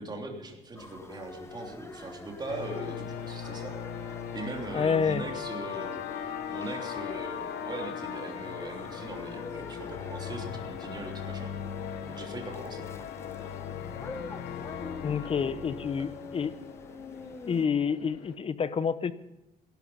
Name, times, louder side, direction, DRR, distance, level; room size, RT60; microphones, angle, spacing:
voice 1, 0.0-3.7 4.1-11.5 12.1-12.8 15.0-15.6 15.9-16.1, right 2 dB, 25° right, 1 dB, 3.1 m, -40 dB
sound 1, 0.8-17.7, left 3 dB, 15° left, 1.1 m, -47 dB
sound 2, 2.5-18.3, left 8 dB, 85° left, 1.3 m, -39 dB
voice 2, 4.7-5.2 15.0-16.5 17.5-19.1, left 6 dB, 35° left, 15 dB, 0.8 m, -28 dB
17.5 x 11.5 x 5.6 m, 0.92 s
cardioid pair, 110°, 17 cm